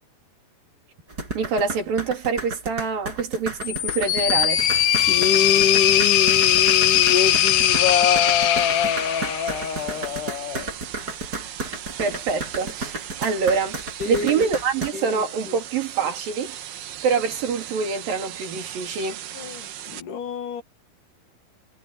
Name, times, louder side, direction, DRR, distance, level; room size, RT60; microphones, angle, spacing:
sound 1, 1.1-14.9, right 2 dB, 25° right, 6.7 m, -33 dB
voice 1, 1.3-4.6 12.0-13.8 14.1-16.6 17.0-19.2, right 5 dB, 70° right, 4.8 m, -25 dB
sound 2, 3.6-9.8, left 12 dB, 90° left, 3.2 m, -20 dB
sound 3, 4.6-20.0, right 11 dB, 90° right, 3.6 m, -38 dB
voice 2, 5.0-10.7 14.0-14.5 14.9-15.6 19.3-20.6, left 7 dB, 60° left, 3.2 m, -26 dB
omnidirectional pair, 4.3 m